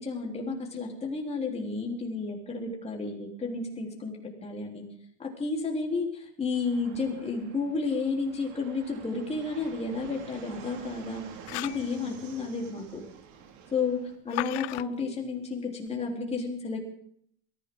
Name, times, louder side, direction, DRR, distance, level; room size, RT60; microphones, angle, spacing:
voice 1, 0.0-4.8 5.2-11.2 11.5-13.0 13.7-16.9, left 4 dB, 20° left, -1 dB, 4.0 m, -32 dB
Fixed-wing aircraft airplane, 6.5-14.2, right 7 dB, 60° right, 2.6 m, -49 dB
sound 1, 11.3-11.9 14.3-14.8, left 21 dB, 90° left, 0.5 m, -35 dB
22.0 x 15.5 x 4.0 m, 0.65 s
supercardioid pair, 130°, 32 cm